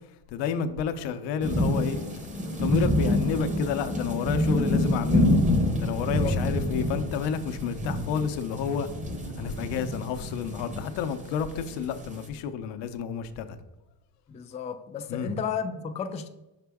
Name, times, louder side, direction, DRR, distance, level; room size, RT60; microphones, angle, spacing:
voice 1, 0.3-2.0 2.6-5.3 5.8-8.9 9.4-13.6 15.1-15.3, left 7 dB, 75° left, 0.7 m, -30 dB
sound 1, 1.4-12.3, left 1 dB, 15° right, 0.9 m, -27 dB
voice 2, 6.0-6.4 14.3-16.3, left 6 dB, 15° left, 0.3 m, -33 dB
5.8 x 5.0 x 3.5 m
cardioid pair, 115°, 43 cm